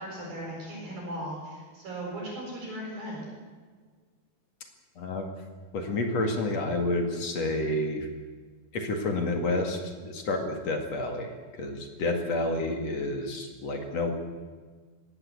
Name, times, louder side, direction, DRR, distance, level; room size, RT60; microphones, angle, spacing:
voice 1, 0.0-3.2, right 1 dB, 65° right, -3 dB, 9.0 m, -37 dB
voice 2, 5.0-5.3 5.7-8.1 8.7-14.1, left 2 dB, 50° left, 4 dB, 2.9 m, -29 dB
21.0 x 17.0 x 8.7 m, 1.5 s
omnidirectional pair, 4.4 m